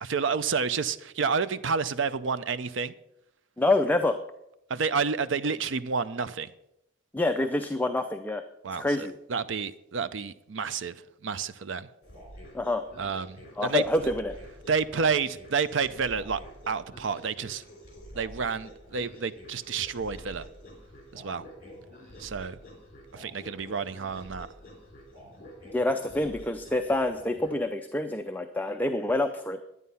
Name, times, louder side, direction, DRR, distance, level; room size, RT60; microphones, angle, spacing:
voice 1, 0.0-2.9 4.7-6.5 8.6-11.9 13.0-14.1 14.7-16.4 16.7-17.6 18.1-20.5 21.1-21.4 22.2-22.6 23.1-24.5, right 5 dB, 70° right, 0.6 m, -30 dB
voice 2, 3.6-4.2 7.1-8.4 8.7-9.1 12.5-12.8 13.6-14.4 25.7-29.6, left 2 dB, 10° left, 0.5 m, -27 dB
sound 1, 12.0-27.6, equal, 40° left, 4.1 m, -48 dB
11.5 x 9.5 x 5.5 m
head